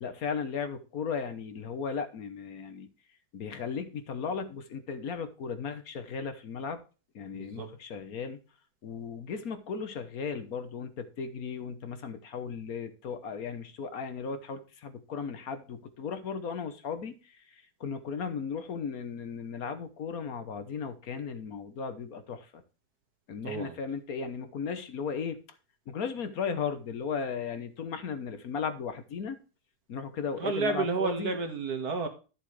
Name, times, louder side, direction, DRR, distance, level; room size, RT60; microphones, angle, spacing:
voice 1, 0.0-2.9 3.3-6.8 7.1-8.4 8.8-22.6 23.3-25.4 25.9-29.4 29.9-31.4, left 6 dB, 65° left, 1.5 m, -36 dB
voice 2, 7.3-7.7 23.4-23.7 30.4-32.1, right 4 dB, 70° right, 2.1 m, -31 dB
11.5 x 7.3 x 3.2 m
omnidirectional pair, 1.7 m